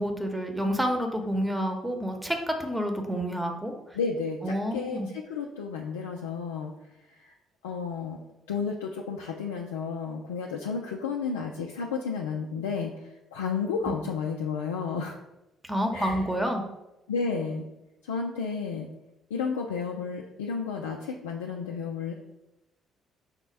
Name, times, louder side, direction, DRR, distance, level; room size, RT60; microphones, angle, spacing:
voice 1, 0.0-3.7 4.4-5.1 15.6-16.6, equal, 5° right, 3 dB, 0.8 m, -29 dB
voice 2, 3.9-6.7 7.1-7.3 7.6-8.2 8.5-15.2 15.9-16.2 17.1-17.7 18.0-18.9 19.3-22.1, left 5 dB, 90° left, -1 dB, 0.3 m, -32 dB
4.9 x 2.1 x 4.5 m, 0.93 s
hypercardioid pair, 50°, 0 cm